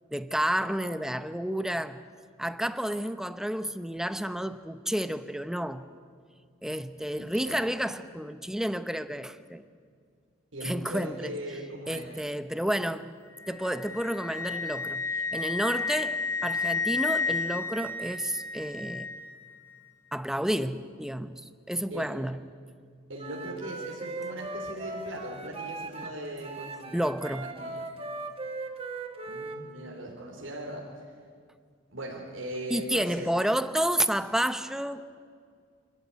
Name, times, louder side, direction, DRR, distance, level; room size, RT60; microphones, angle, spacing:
voice 1, 0.1-2.0 2.4-5.9 6.6-9.6 10.6-11.3 11.9-13.1 13.5-15.0 15.3-19.1 20.1-21.4 21.7-22.4 26.0-26.1 26.9-27.5 32.7-35.1, equal, 5° right, 0.8 m, -30 dB
voice 2, 7.2-7.6 10.5-12.1 21.9-22.1 23.1-27.0 27.4-27.9 29.3-31.1 31.9-33.3, right 1 dB, 80° right, 3.7 m, -39 dB
Wind instrument woodwind instrument, 13.4-19.3, left 4 dB, 15° left, 1.7 m, -32 dB
Wind instrument woodwind instrument 2, 23.2-26.1 26.4-29.6, right 2 dB, 30° right, 1.7 m, -38 dB
26.5 x 14.0 x 9.8 m
head